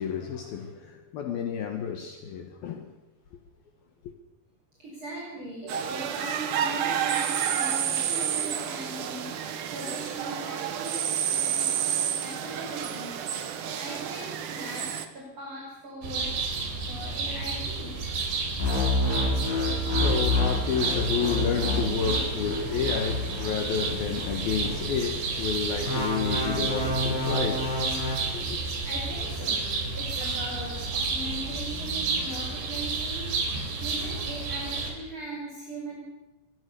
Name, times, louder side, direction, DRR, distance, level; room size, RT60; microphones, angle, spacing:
voice 1, 0.0-2.9 18.9-28.6, left 7 dB, 65° left, 3.1 m, -31 dB
voice 2, 4.8-18.0 28.6-36.0, right 1 dB, 30° right, 6.2 m, -40 dB
sound 1, 5.7-15.1, right 9 dB, 60° right, 2.6 m, -30 dB
Birds in park, 16.0-34.9, right 4 dB, 80° right, 6.1 m, -31 dB
sound 2, 18.6-25.1 25.9-28.2, left 2 dB, 80° left, 10.0 m, -29 dB
25.5 x 21.5 x 7.0 m
omnidirectional pair, 4.9 m